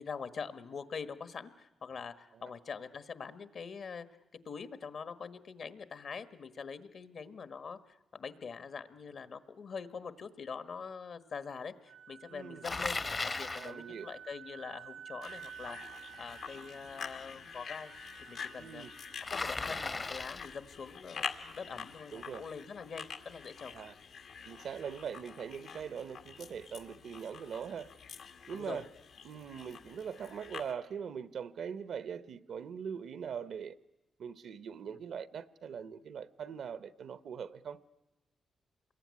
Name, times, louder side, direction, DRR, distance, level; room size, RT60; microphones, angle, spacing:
voice 1, 0.0-4.1 4.4-17.9 18.2-18.8 19.3-21.3 21.5-23.7 28.5-28.8 34.9-35.0, left 5 dB, 60° left, 1.3 m, -44 dB
Wind instrument woodwind instrument, 11.5-19.3, right 9 dB, 90° right, 1.8 m, -52 dB
voice 2, 12.3-12.6 13.5-14.1 18.6-18.9 21.7-21.9 22.1-22.4 23.7-23.9 24.5-27.9 28.5-28.9 29.2-33.8 34.2-37.8, right 7 dB, 70° right, 0.9 m, -42 dB
Bicycle, 12.6-13.7 19.3-20.5, left 3 dB, 30° left, 0.9 m, -36 dB
sound 1, 15.2-30.7, left 6 dB, 80° left, 1.9 m, -47 dB
27.0 x 22.0 x 9.6 m
cardioid pair, 110°, 0 cm